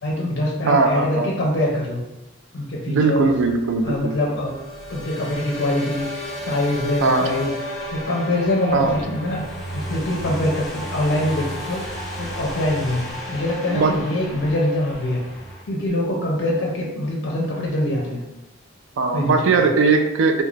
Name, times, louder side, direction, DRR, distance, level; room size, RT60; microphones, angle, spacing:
voice 1, 0.0-2.0 2.5-3.3 3.8-4.6 4.9-6.1 6.5-7.5 7.9-9.4 9.7-11.8 12.2-15.2 15.7-18.2 19.1-19.5, left 1 dB, 60° left, -2 dB, 0.4 m, -24 dB
voice 2, 0.6-1.3 2.9-4.2 7.0-7.3 8.7-9.0 13.7-13.9 19.0-20.4, right 4 dB, 70° right, 5 dB, 0.3 m, -19 dB
sound 1, 3.3-15.6, equal, ahead, 0.4 m, -33 dB
2.3 x 2.1 x 3.1 m, 0.98 s
head